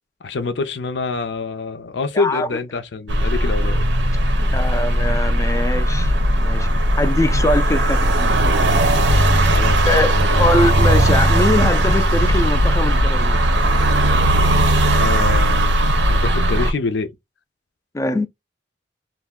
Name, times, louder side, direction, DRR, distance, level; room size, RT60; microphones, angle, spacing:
voice 1, 0.2-3.9 9.4-10.5 14.9-15.7 16.1-17.1, left 4 dB, 75° left, 0.5 m, -26 dB
voice 2, 2.1-2.5 4.4-6.7 7.0-8.4 9.8-13.7 17.9-18.3, left 1 dB, 15° left, 0.4 m, -22 dB
sound 1, 3.1-16.7, right 1 dB, 80° right, 0.6 m, -17 dB
2.5 x 2.1 x 3.5 m
head